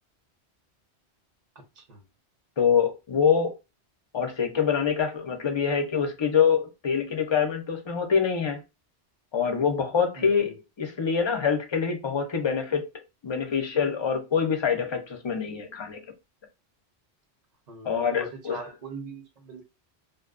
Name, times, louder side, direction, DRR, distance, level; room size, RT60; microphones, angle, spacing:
voice 1, 1.5-2.1 10.2-10.6 17.7-19.6, right 4 dB, 50° right, 0.7 m, -42 dB
voice 2, 2.6-3.5 4.1-8.6 9.3-12.9 13.2-16.0 17.8-18.6, left 6 dB, 45° left, 0.3 m, -25 dB
2.5 x 2.1 x 2.3 m
omnidirectional pair, 1.1 m